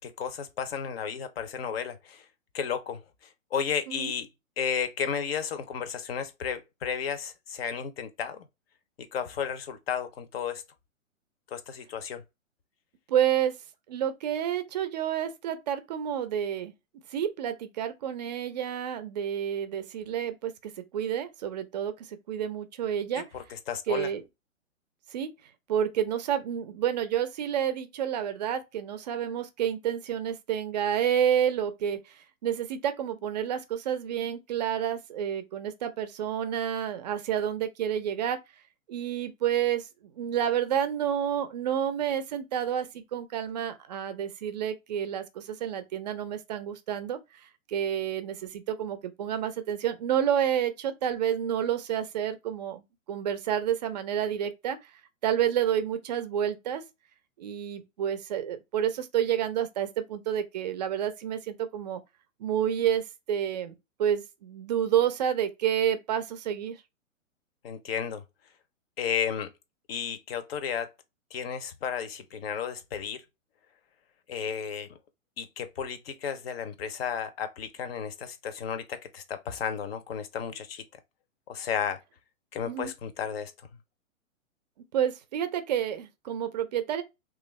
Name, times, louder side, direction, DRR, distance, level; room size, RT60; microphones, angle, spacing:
voice 1, 0.0-2.2 2.5-3.0 3.5-4.3 4.6-8.5 9.1-10.6 11.5-12.2 23.1-24.1 67.6-68.2 69.0-69.5 69.9-70.9 71.3-73.2 74.3-75.0 75.4-80.8 81.5-82.0 82.5-83.5, left 7 dB, 50° left, 0.7 m, -33 dB
voice 2, 13.1-13.5 13.9-16.7 17.1-23.3 23.9-24.2 25.1-25.3 25.7-38.4 38.9-39.9 40.2-47.2 47.7-52.8 53.1-54.8 55.2-56.8 57.4-62.0 62.4-66.8 82.7-82.9 84.9-87.0, right 9 dB, 35° right, 0.5 m, -29 dB
3.2 x 2.4 x 3.1 m
hypercardioid pair, 130°, 40 cm